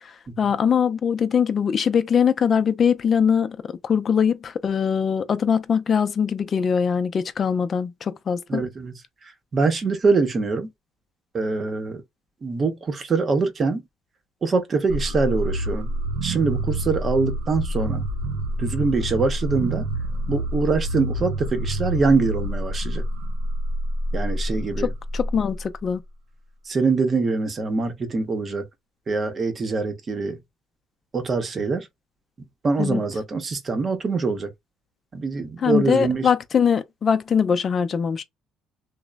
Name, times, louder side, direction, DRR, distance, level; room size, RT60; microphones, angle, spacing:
voice 1, 0.4-3.6 3.8-8.6 24.8-26.0 32.8-33.0 35.6-38.2, left 7 dB, 40° left, 0.4 m, -22 dB
voice 2, 8.5-9.0 9.5-10.7 11.3-12.0 12.4-13.8 14.4-15.9 16.2-18.1 18.6-19.9 20.3-23.0 24.1-24.9 26.7-28.7 29.1-30.4 31.1-31.9 32.6-34.5 35.1-36.3, right 4 dB, 35° right, 0.7 m, -24 dB
sound 1, 14.9-25.8, equal, 85° right, 0.5 m, -27 dB
3.0 x 2.1 x 2.2 m
cardioid pair, 105°, 0 cm